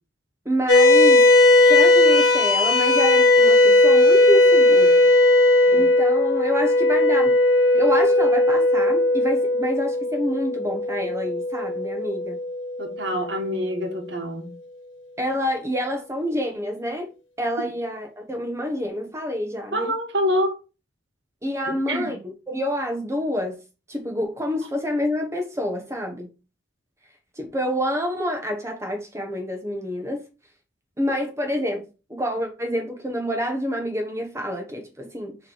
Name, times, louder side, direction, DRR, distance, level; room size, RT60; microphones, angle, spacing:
voice 1, 0.4-1.2 1.7-5.1 5.7-7.4 7.8-12.4 15.2-17.1 17.4-19.9 21.4-23.6 23.9-26.3 27.4-30.2 31.0-35.4, equal, 15° right, 1.0 m, -27 dB
sound 1, 0.7-13.3, left 2 dB, 65° left, 1.3 m, -17 dB
voice 2, 12.8-14.5 19.7-20.6 21.7-22.1, equal, 55° right, 1.4 m, -26 dB
6.6 x 3.2 x 4.6 m
head